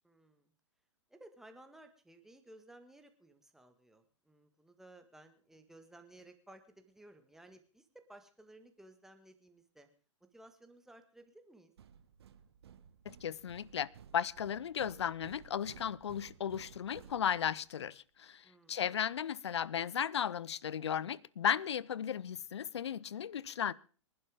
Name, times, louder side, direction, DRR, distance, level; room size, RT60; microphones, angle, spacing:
voice 1, 0.0-0.5 1.1-9.9 10.3-11.7 18.4-18.8, right 1 dB, ahead, 1.6 m, -58 dB
sound 1, 11.8-17.8, right 8 dB, 55° right, 1.2 m, -56 dB
voice 2, 13.1-23.7, left 9 dB, 60° left, 0.6 m, -35 dB
25.5 x 11.5 x 3.6 m
figure-of-eight pair, 110°, 16 cm